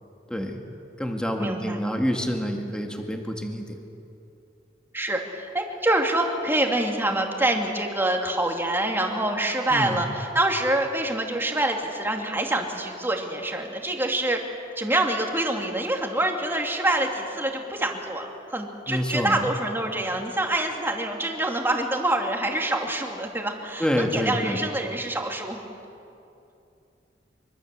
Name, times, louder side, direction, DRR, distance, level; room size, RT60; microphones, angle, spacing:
voice 1, 0.3-0.6 1.0-3.8 9.7-10.0 18.9-19.4 23.8-24.6, equal, 5° left, 2 dB, 2.1 m, -27 dB
voice 2, 1.4-1.8 4.9-14.4 14.8-25.6, right 1 dB, 15° right, 2 dB, 2.5 m, -26 dB
24.5 x 24.0 x 7.6 m, 2.7 s
head